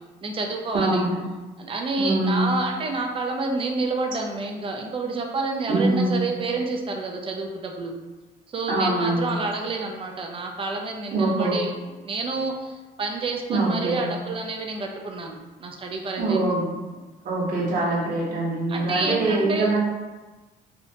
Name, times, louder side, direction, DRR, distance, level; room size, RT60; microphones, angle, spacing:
voice 1, 0.2-1.0 1.6-7.9 8.5-11.7 12.0-16.4 18.7-19.7, right 3 dB, 30° right, 2 dB, 0.5 m, -29 dB
voice 2, 0.7-1.2 2.0-2.5 5.7-6.3 8.7-9.3 11.1-11.6 13.5-14.0 16.2-16.7 17.2-19.8, right 2 dB, 55° right, -5 dB, 1.1 m, -23 dB
3.3 x 2.7 x 2.8 m, 1.2 s
cardioid pair, 110°, 17 cm